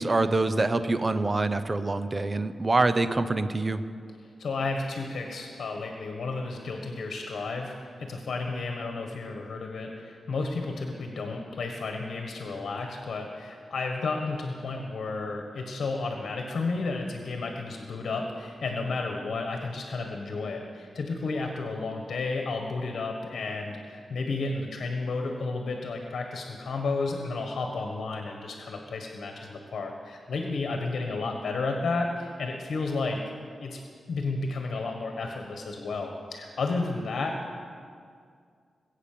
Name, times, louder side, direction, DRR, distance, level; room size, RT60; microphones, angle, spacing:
voice 1, 0.0-3.8, right 2 dB, 20° right, 11 dB, 0.6 m, -25 dB
voice 2, 4.4-33.2 33.6-33.8 34.1-37.6, left 3 dB, 60° left, 3 dB, 1.5 m, -32 dB
21.5 x 8.4 x 6.8 m, 2.2 s
wide cardioid pair, 180°, 0 cm